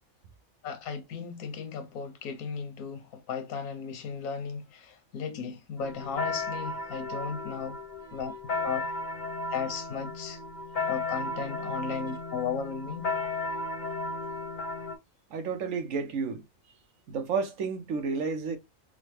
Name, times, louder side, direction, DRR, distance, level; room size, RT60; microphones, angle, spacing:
voice 1, 0.6-7.8 8.1-8.3 8.6-8.9 9.5-10.4 10.9-13.1, left 6 dB, 90° left, 1.2 m, -36 dB
sound 1, 5.8-14.9, left 3 dB, 45° left, 0.7 m, -34 dB
voice 2, 15.3-16.4 17.1-18.6, right 5 dB, 70° right, 1.1 m, -31 dB
3.8 x 2.1 x 3.1 m
omnidirectional pair, 1.4 m